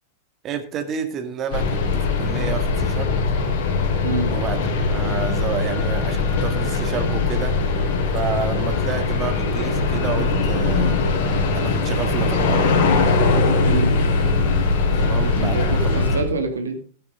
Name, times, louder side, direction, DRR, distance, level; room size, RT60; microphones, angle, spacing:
voice 1, 0.4-3.1 4.3-7.6 8.1-11.0 11.5-12.7 14.9-16.0, right 7 dB, 35° right, 7 dB, 2.1 m, -30 dB
sound 1, 1.5-16.2, left 3 dB, 55° left, 4.6 m, -21 dB
voice 2, 4.0-4.3 13.6-14.0 15.3-16.8, right 3 dB, 75° right, 5 dB, 2.5 m, -26 dB
14.5 x 10.5 x 3.8 m, 0.42 s
figure-of-eight pair, 95°, 0 cm